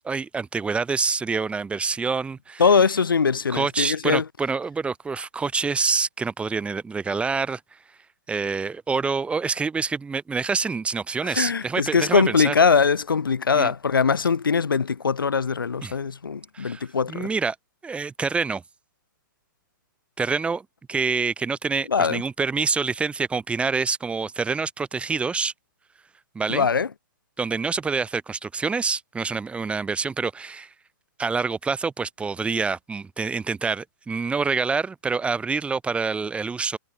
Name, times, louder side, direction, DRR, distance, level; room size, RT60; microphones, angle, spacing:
voice 1, 0.0-2.6 3.5-7.6 8.3-12.5 13.5-13.7 15.8-15.9 16.5-17.6 17.8-18.6 20.2-25.5 26.3-26.7 27.4-30.7 31.2-36.8, right 4 dB, 10° right, 4.5 m, -26 dB
voice 2, 2.6-4.3 11.2-17.3 21.9-22.2 26.5-26.9, left 5 dB, 90° left, 1.8 m, -21 dB
hypercardioid pair, 130°, 11 cm